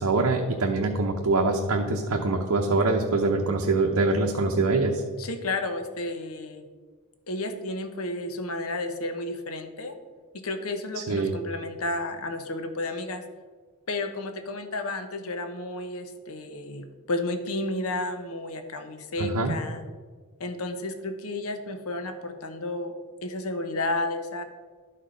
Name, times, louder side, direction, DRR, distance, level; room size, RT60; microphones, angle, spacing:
voice 1, 0.0-5.0 11.1-11.3 19.2-19.5, right 3 dB, 90° right, 1 dB, 0.8 m, -24 dB
voice 2, 5.2-6.6 7.3-10.0 10.3-13.2 13.9-19.8 20.4-22.9 23.2-24.4, left 2 dB, 75° left, 7 dB, 0.9 m, -32 dB
12.0 x 4.5 x 5.1 m, 1.4 s
head